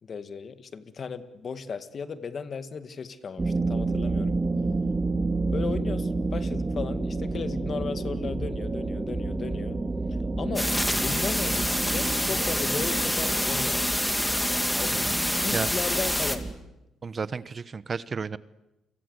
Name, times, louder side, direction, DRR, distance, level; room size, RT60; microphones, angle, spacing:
voice 1, 0.0-4.4 5.5-9.8 10.4-10.8 11.0-13.9 14.7-15.1 15.4-16.4, left 5 dB, 45° left, 11 dB, 1.9 m, -35 dB
sound 1, 3.4-16.5, right 3 dB, 20° right, 3.2 m, -30 dB
sound 2, 10.6-16.4, left 1 dB, 5° left, 2.7 m, -27 dB
voice 2, 17.0-18.4, right 5 dB, 40° right, 16 dB, 1.0 m, -32 dB
29.5 x 24.0 x 8.2 m, 0.95 s
cardioid pair, 90°, 0 cm